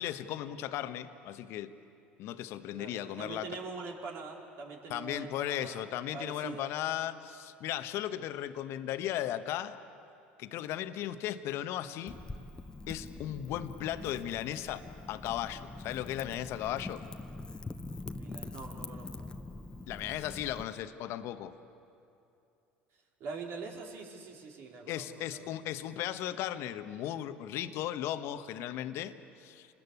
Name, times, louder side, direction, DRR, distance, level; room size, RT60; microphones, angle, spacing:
voice 1, 0.0-1.7 2.2-3.6 4.9-9.8 10.4-12.1 12.9-17.0 19.9-21.5 24.9-29.7, left 12 dB, 60° left, 10 dB, 1.3 m, -36 dB
voice 2, 2.7-5.9 6.1-6.7 18.1-19.6 23.2-25.5, right 4 dB, 55° right, 0 dB, 4.3 m, -44 dB
Wind / Fire, 12.1-20.6, left 2 dB, 15° left, 1.1 m, -44 dB
29.0 x 20.5 x 8.4 m, 2.7 s
hypercardioid pair, 70°, 5 cm